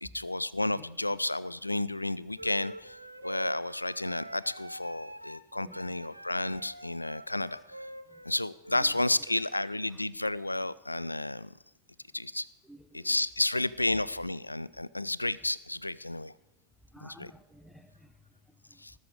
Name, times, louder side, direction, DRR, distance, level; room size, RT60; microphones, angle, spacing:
voice 1, 0.0-3.0 3.2-7.9 8.2-11.5 12.1-12.5 12.9-16.3 17.0-17.3 18.8-18.9, left 2 dB, 85° left, 20 dB, 0.3 m, -32 dB
sound 1, 2.4-8.9, right 1 dB, 85° right, 0.6 m, -45 dB
voice 2, 5.6-6.1 8.1-8.2 8.7-8.9 9.3-10.0 12.6-13.2 16.9-18.8, equal, 5° left, 11 dB, 0.7 m, -55 dB
19.5 x 6.5 x 5.0 m, 0.95 s
figure-of-eight pair, 90°, 0 cm